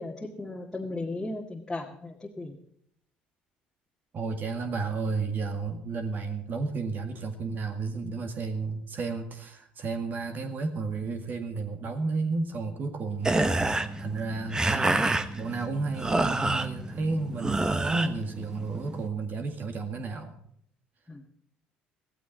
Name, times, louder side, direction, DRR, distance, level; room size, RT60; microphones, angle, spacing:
voice 1, 0.0-2.6 21.1-21.3, left 2 dB, 10° left, -1 dB, 2.1 m, -36 dB
voice 2, 4.1-13.4 14.0-15.1 15.4-20.4, right 4 dB, 45° right, 6 dB, 1.9 m, -32 dB
sound 1, 13.2-19.1, right 2 dB, 15° right, 1.2 m, -28 dB
15.5 x 15.5 x 4.0 m, 0.69 s
hypercardioid pair, 70°, 4 cm